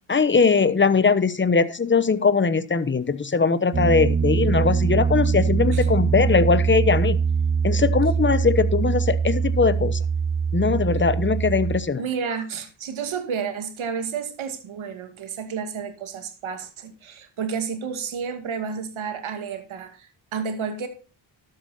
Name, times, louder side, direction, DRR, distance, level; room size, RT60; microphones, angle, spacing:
voice 1, 0.1-7.2 7.6-10.0 10.5-12.0, left 5 dB, 25° left, 15 dB, 1.0 m, -20 dB
Piano, 3.7-11.8, right 6 dB, 25° right, 0.6 m, -23 dB
voice 2, 12.0-20.9, right 6 dB, 85° right, 7 dB, 2.2 m, -31 dB
12.5 x 8.0 x 4.1 m, 0.36 s
cardioid pair, 70°, 47 cm